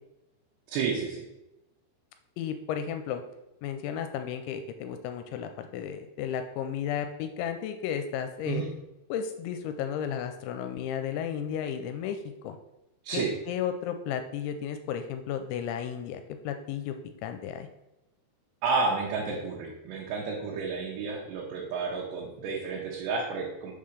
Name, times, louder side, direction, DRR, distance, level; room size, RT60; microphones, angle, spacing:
voice 1, 0.7-1.2 8.5-8.7 13.0-13.3 18.6-23.7, right 4 dB, 75° right, -3 dB, 3.0 m, -31 dB
voice 2, 2.4-3.2 3.6-8.6 9.1-12.6 13.1-17.0 17.2-17.7, left 8 dB, 85° left, 7 dB, 2.9 m, -33 dB
7.1 x 3.8 x 6.4 m, 0.94 s
omnidirectional pair, 5.3 m